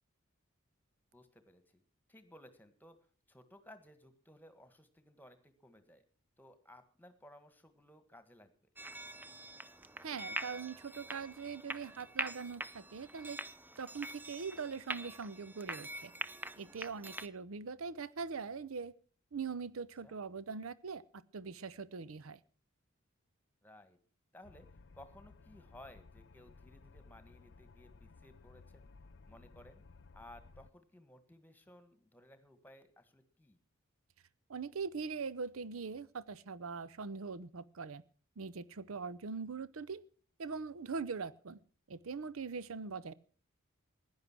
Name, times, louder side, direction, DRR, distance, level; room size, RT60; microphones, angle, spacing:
voice 1, 1.1-1.8 2.1-3.0 3.3-6.0 6.4-8.5 20.0-20.2 23.6-24.0 24.3-24.7 24.9-28.9 29.3-29.8 30.1-33.6 39.3-39.4, left 1 dB, 10° left, 10 dB, 1.6 m, -58 dB
sound 1, 8.8-17.3, right 2 dB, 10° right, 0.6 m, -44 dB
voice 2, 10.0-13.4 13.8-16.1 16.6-18.9 19.3-21.0 21.3-22.4 34.5-38.0 38.4-40.0 40.4-41.6 41.9-43.1, right 5 dB, 80° right, 18 dB, 0.6 m, -42 dB
sound 2, 24.4-30.7, left 4 dB, 60° left, 0.6 m, -58 dB
16.0 x 10.5 x 6.1 m, 0.44 s
head